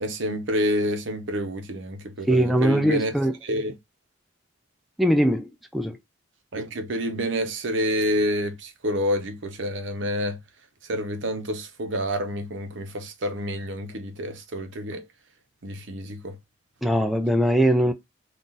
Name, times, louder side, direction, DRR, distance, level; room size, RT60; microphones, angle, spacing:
voice 1, 0.0-3.1 3.4-3.7 6.5-10.4 10.9-15.0 15.6-16.4, equal, 65° right, 0.8 m, -28 dB
voice 2, 2.3-3.3 5.0-6.0 16.8-17.9, right 1 dB, ahead, 0.3 m, -21 dB
3.9 x 2.4 x 3.9 m
head